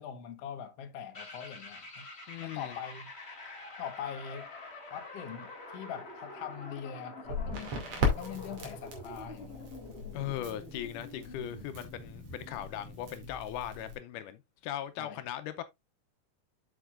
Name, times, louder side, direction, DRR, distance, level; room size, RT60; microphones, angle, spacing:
voice 1, 0.0-2.1 2.4-3.1 3.8-4.5 4.9-9.7 15.0-15.2, left 8 dB, 60° left, 1.9 m, -42 dB
sound 1, 1.1-13.2, left 2 dB, 25° left, 1.9 m, -47 dB
voice 2, 2.3-2.8 10.1-15.6, left 11 dB, 80° left, 2.2 m, -39 dB
Crackle, 7.2-14.0, left 2 dB, 55° right, 3.3 m, -37 dB
8.0 x 7.2 x 2.5 m
omnidirectional pair, 3.7 m